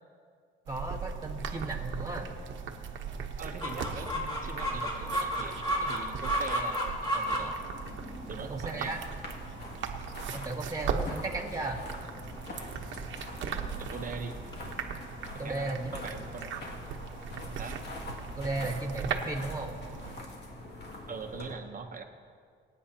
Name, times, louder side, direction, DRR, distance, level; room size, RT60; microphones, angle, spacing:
voice 1, 0.7-2.3 8.5-9.0 10.3-11.8 15.4-15.8 18.4-19.7, right 2 dB, 15° right, -1 dB, 1.4 m, -35 dB
sound 1, 0.7-20.2, right 6 dB, 70° right, 1.1 m, -39 dB
voice 2, 3.4-7.6 8.3-9.0 13.8-14.4 15.4-16.5 17.6-17.8 21.1-22.0, right 5 dB, 45° right, 4 dB, 1.0 m, -41 dB
Chicken rooster, 3.6-14.7, equal, 25° left, 3.2 m, -35 dB
sound 2, 7.7-21.5, left 2 dB, 60° left, 2.4 m, -44 dB
23.5 x 9.3 x 2.9 m, 2.1 s
cardioid pair, 90°, 20 cm